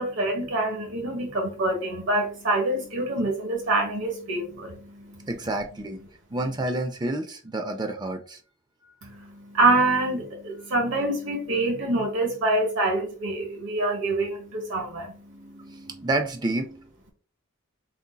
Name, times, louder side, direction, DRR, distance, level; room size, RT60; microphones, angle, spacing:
voice 1, 0.0-5.3 9.0-15.8, right 2 dB, 60° right, 1 dB, 1.2 m, -26 dB
voice 2, 5.3-6.0 6.3-8.4 15.3-17.1, right 2 dB, 20° right, 6 dB, 0.4 m, -30 dB
4.9 x 4.0 x 2.2 m, 0.40 s
head